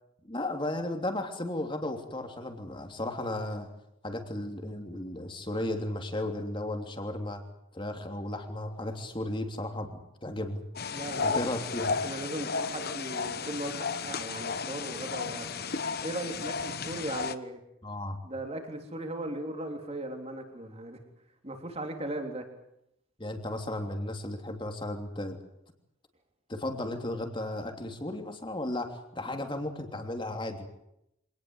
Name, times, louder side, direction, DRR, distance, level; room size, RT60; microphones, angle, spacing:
voice 1, 0.2-3.7 4.0-7.4 7.7-10.6 11.2-11.9 17.8-18.2 23.2-25.4 26.5-30.7, left 1 dB, 25° left, 5 dB, 3.1 m, -34 dB
sound 1, 10.8-17.4, left 5 dB, 50° left, 1.1 m, -33 dB
voice 2, 10.9-11.4 12.0-15.5 16.0-17.6 18.2-21.0 21.4-22.5, right 1 dB, 30° right, 4 dB, 3.5 m, -37 dB
26.0 x 19.0 x 8.1 m, 0.82 s
head